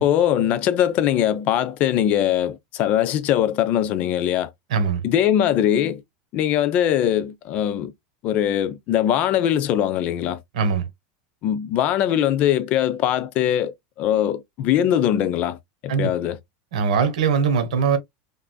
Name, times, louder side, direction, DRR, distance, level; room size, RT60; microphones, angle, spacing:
voice 1, 0.0-4.5 5.0-6.0 6.3-7.9 8.2-10.4 11.4-16.4, left 10 dB, 40° left, 0.4 m, -21 dB
voice 2, 4.7-5.0 10.5-10.9 15.9-16.1 16.7-18.0, right 6 dB, 90° right, 1.2 m, -21 dB
3.4 x 2.5 x 2.2 m
supercardioid pair, 150°, 4 cm